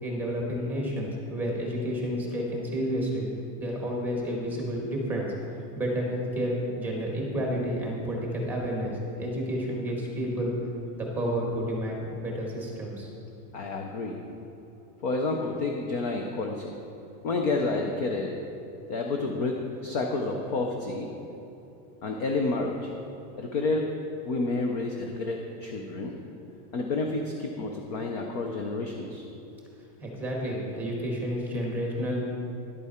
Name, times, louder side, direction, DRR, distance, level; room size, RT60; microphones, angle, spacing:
voice 1, 0.0-3.3 3.6-5.3 5.7-10.5 10.9-13.1 30.0-32.2, equal, 5° right, -2 dB, 1.4 m, -30 dB
voice 2, 13.5-14.2 15.0-16.7 17.2-18.3 18.9-19.6 19.8-21.1 22.0-22.9 23.4-23.9 24.2-26.1 26.7-29.3, left 3 dB, 30° left, 2 dB, 0.3 m, -29 dB
11.0 x 8.3 x 4.2 m, 2.9 s
supercardioid pair, 170°, 48 cm